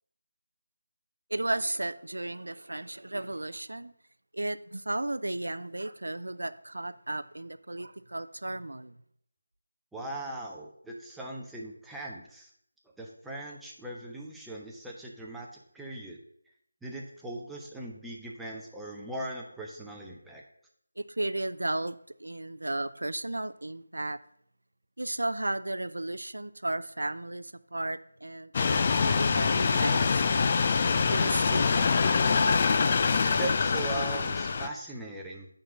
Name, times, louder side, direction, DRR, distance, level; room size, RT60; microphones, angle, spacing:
voice 1, 1.3-3.9 4.3-9.0 21.0-24.2 25.0-30.7 31.1-32.4, right 1 dB, 90° right, 14 dB, 0.5 m, -34 dB
voice 2, 9.9-12.5 13.0-15.5 15.7-16.2 16.8-20.4 33.4-35.5, right 2 dB, 5° right, -2 dB, 0.7 m, -39 dB
sound 1, 28.5-34.7, left 5 dB, 30° left, 0.4 m, -25 dB
9.4 x 3.9 x 5.7 m, 0.67 s
figure-of-eight pair, 170°, 0 cm